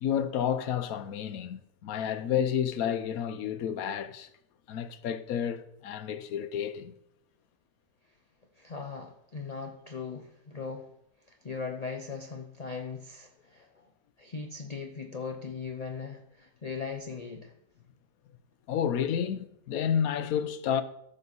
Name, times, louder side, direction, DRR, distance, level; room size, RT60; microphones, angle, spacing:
voice 1, 0.0-4.3 4.7-6.9 18.7-20.8, left 8 dB, 75° left, 1.2 m, -30 dB
voice 2, 8.6-10.9 11.3-13.9 14.2-17.5, left 5 dB, 35° left, 0.6 m, -39 dB
14.0 x 6.4 x 4.1 m
omnidirectional pair, 1.6 m